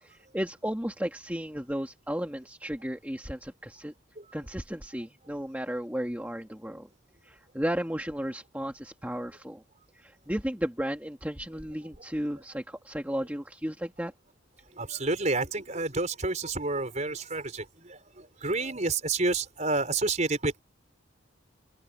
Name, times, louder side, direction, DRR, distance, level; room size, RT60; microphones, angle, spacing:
voice 1, 0.0-3.9 4.3-6.9 7.2-9.6 10.0-14.1, equal, 10° right, 2.0 m, -34 dB
voice 2, 14.8-20.6, right 3 dB, 35° right, 4.9 m, -29 dB
open air
head